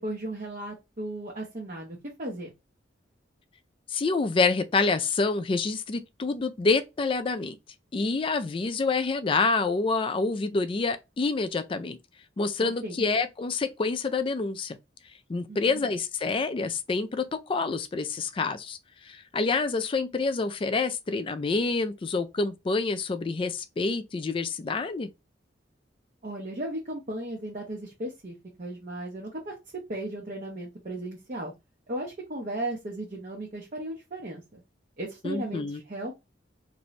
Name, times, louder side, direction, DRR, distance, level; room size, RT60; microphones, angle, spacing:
voice 1, 0.0-2.5 12.6-13.0 15.5-15.8 26.2-31.5 31.9-34.6 35.0-36.1, right 1 dB, 45° right, 0.7 m, -36 dB
voice 2, 3.9-7.6 7.9-12.0 12.4-14.8 15.3-25.1 35.2-35.8, left 4 dB, 30° left, 0.3 m, -27 dB
2.9 x 2.6 x 3.1 m
head